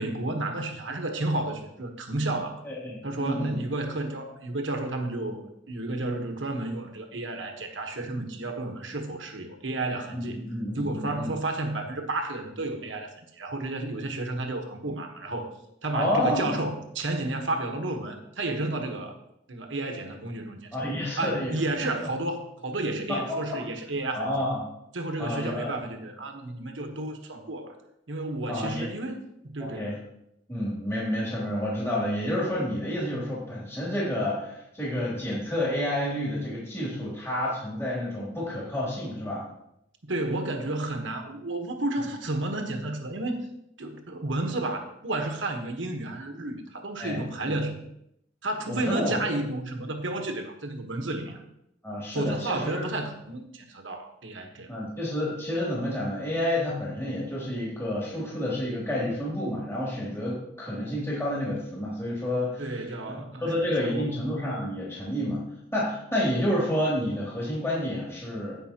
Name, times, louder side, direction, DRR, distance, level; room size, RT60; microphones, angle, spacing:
voice 1, 0.0-2.6 3.0-10.4 10.7-15.5 15.8-19.2 19.5-20.7 21.2-24.4 24.9-27.7 28.1-29.9 40.0-43.5 43.8-47.8 48.4-51.4 52.1-54.7 62.6-63.4 63.8-64.1, right 2 dB, 80° right, 5 dB, 1.2 m, -31 dB
voice 2, 2.6-3.6 10.1-11.3 15.9-16.6 20.7-21.6 22.0-22.1 23.1-23.6 24.1-24.6 25.2-25.7 28.5-28.9 29.6-30.0 30.5-39.4 47.0-47.5 48.7-49.2 51.8-52.8 54.7-62.8 63.1-65.4 65.7-68.6, left 1 dB, 15° left, -6 dB, 2.6 m, -29 dB
16.0 x 5.5 x 2.9 m, 0.79 s
head